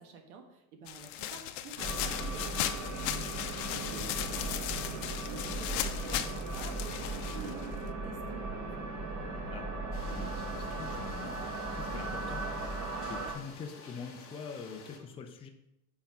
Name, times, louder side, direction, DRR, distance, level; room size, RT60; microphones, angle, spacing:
voice 1, 0.0-3.3 3.9-4.0 4.3-8.9, right 5 dB, 75° right, 4 dB, 1.4 m, -48 dB
sound 1, 0.9-7.9, left 12 dB, 60° left, 0.7 m, -37 dB
sound 2, 1.8-13.3, right 2 dB, 35° right, 2.1 m, -37 dB
voice 2, 3.6-4.1 9.5-9.7 10.0-12.8 13.1-15.5, left 5 dB, 15° left, 3 dB, 0.5 m, -45 dB
sound 3, 9.9-15.0, left 5 dB, 30° left, 1.2 m, -51 dB
5.6 x 4.3 x 5.8 m, 0.88 s
supercardioid pair, 145°, 43 cm